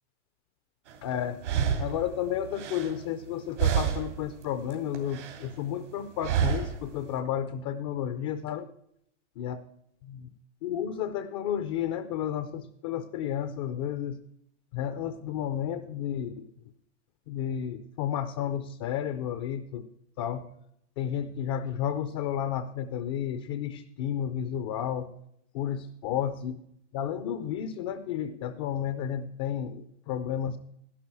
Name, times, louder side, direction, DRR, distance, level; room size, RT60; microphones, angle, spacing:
sound 1, 0.9-1.0 1.4-3.3 3.6-4.3 4.6-5.5 6.2-6.9, right 8 dB, 80° right, 3.1 m, -29 dB
voice 1, 1.0-1.4 1.8-8.7 9.4-9.6 10.0-10.3 10.6-14.2 14.7-16.5 17.3-19.9 20.2-20.5 21.0-25.2 25.5-26.6 26.9-30.6, left 9 dB, 25° left, 11 dB, 0.4 m, -32 dB
11.5 x 11.0 x 4.7 m, 0.74 s
supercardioid pair, 160°, 35 cm